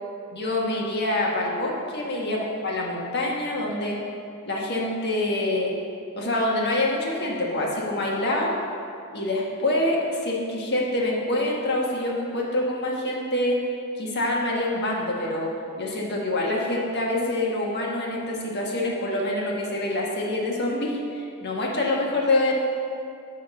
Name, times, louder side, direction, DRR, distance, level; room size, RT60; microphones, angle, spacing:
voice 1, 0.3-4.0 4.5-5.7 6.2-8.6 9.1-13.6 14.0-15.5 15.8-22.5, left 1 dB, 50° left, -2 dB, 1.4 m, -26 dB
11.0 x 3.7 x 6.7 m, 2.4 s
head